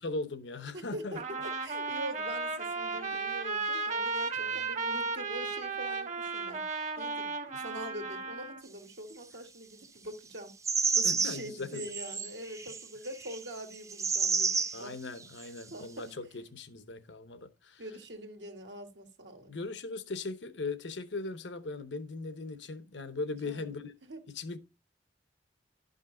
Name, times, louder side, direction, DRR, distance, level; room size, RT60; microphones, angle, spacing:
voice 1, 0.0-1.2 4.4-4.7 11.0-11.8 14.7-17.8 19.5-23.9 24.3-24.6, left 3 dB, 90° left, 0.9 m, -39 dB
voice 2, 0.7-6.6 7.0-10.5 10.8-14.5 14.8-14.9 15.4-16.1 17.8-19.5 23.4-23.7 24.0-24.2, right 1 dB, 80° right, 1.7 m, -44 dB
Trumpet, 1.2-8.6, right 4 dB, 45° right, 1.1 m, -34 dB
sound 1, 10.6-11.5 11.7-14.8 15.4-15.5, right 5 dB, 20° right, 0.5 m, -30 dB
11.5 x 5.4 x 3.8 m
head